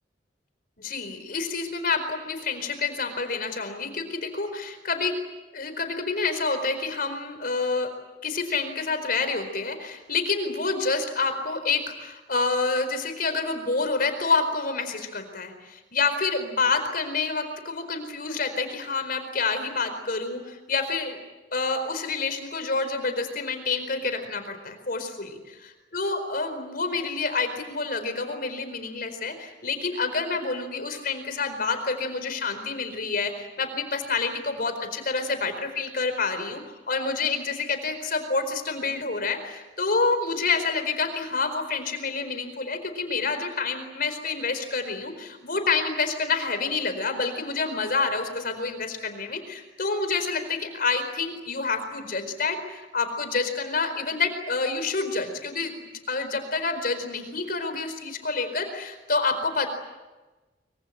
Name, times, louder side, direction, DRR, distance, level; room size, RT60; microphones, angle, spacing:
voice 1, 0.8-5.1 5.5-7.9 8.2-21.2 21.5-55.7 56.1-59.7, left 4 dB, 55° left, 8 dB, 4.5 m, -28 dB
25.0 x 25.0 x 8.9 m, 1.2 s
head